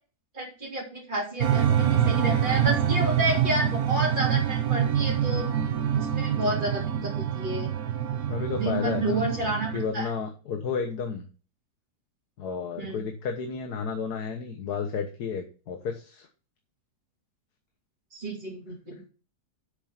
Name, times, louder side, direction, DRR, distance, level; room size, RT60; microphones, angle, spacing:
voice 1, 0.3-5.5 6.0-7.7 8.6-10.1 12.8-13.0 18.1-19.0, right 1 dB, 30° right, -6 dB, 3.4 m, -30 dB
sound 1, 1.4-9.8, right 9 dB, 65° right, 1.3 m, -26 dB
voice 2, 8.3-9.3 9.7-11.2 12.4-16.3, left 6 dB, 75° left, 5 dB, 1.7 m, -32 dB
8.4 x 6.9 x 5.8 m, 0.36 s
omnidirectional pair, 1.7 m